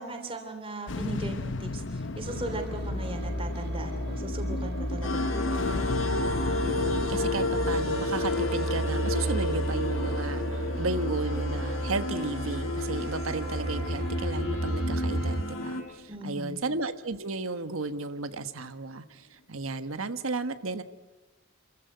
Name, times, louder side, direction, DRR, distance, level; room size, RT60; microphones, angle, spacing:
voice 1, 0.0-5.7 16.1-16.6, right 1 dB, 25° right, 3 dB, 3.3 m, -38 dB
sound 1, 0.9-17.3, left 2 dB, 60° left, 0.8 m, -37 dB
sound 2, 2.2-15.4, right 1 dB, 50° right, 1.9 m, -33 dB
sound 3, 5.0-15.8, left 2 dB, 80° left, 4.0 m, -32 dB
voice 2, 6.6-20.8, right 3 dB, 90° right, 10 dB, 1.3 m, -34 dB
27.0 x 15.0 x 9.5 m, 1.2 s
head